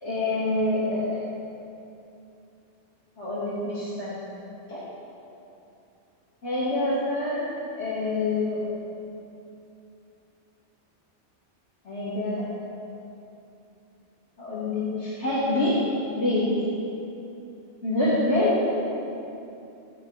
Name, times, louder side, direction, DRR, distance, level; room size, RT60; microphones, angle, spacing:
voice 1, 0.0-1.0 3.2-4.1 4.7-4.8 6.4-7.5 7.8-8.7 11.8-12.4 14.4-15.8 16.1-16.7 17.8-18.6, left 2 dB, 70° left, -10 dB, 2.8 m, -26 dB
17.0 x 9.7 x 5.1 m, 2.8 s
omnidirectional pair, 1.2 m